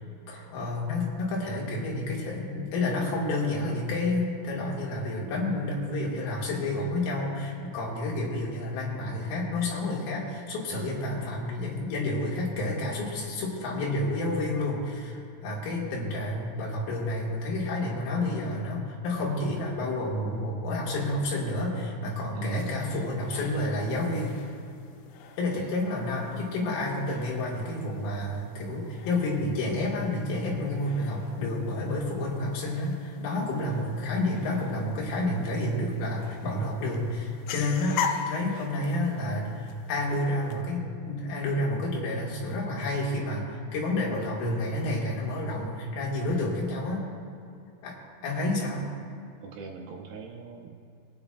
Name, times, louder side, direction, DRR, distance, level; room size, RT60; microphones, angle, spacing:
voice 1, 0.3-24.3 25.4-47.0 47.8-47.9 48.2-48.9, left 2 dB, 60° left, -4 dB, 3.2 m, -30 dB
sound 1, 22.5-40.6, left 7 dB, 90° left, 3.3 m, -42 dB
voice 2, 49.4-50.7, right 4 dB, 85° right, 0 dB, 2.3 m, -41 dB
22.0 x 8.8 x 2.4 m, 2.5 s
omnidirectional pair, 5.6 m